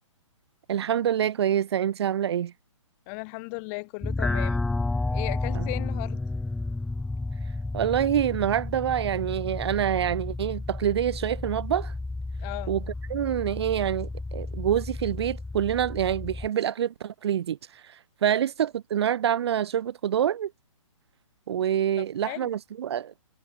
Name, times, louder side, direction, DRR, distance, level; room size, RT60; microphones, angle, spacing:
voice 1, 0.7-2.5 5.5-5.6 7.7-11.9 12.7-12.8 13.1-17.6 17.8-17.9 18.2-20.5 21.5-23.1, right 10 dB, 55° right, 1.4 m, -26 dB
voice 2, 3.1-4.6 5.1-6.2 12.4-12.7 22.0-22.5, left 36 dB, 30° left, 5.0 m, -36 dB
sound 1, 4.0-16.5, left 2 dB, 5° left, 1.5 m, -32 dB
hypercardioid pair, 155°, 17 cm